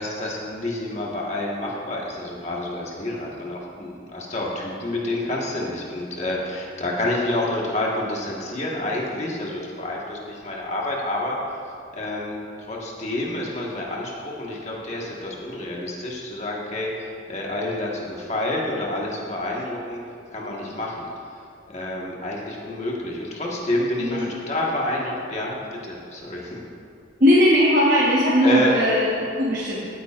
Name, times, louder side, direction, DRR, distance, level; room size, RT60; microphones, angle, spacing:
voice 1, 0.0-11.4 11.9-12.4 12.7-20.0 20.3-21.1 21.7-26.6 28.4-28.7, left 1 dB, 35° left, -3 dB, 1.5 m, -28 dB
voice 2, 24.0-24.3 27.2-29.9, equal, 45° right, -7 dB, 1.2 m, -19 dB
16.5 x 8.8 x 2.5 m, 2.5 s
head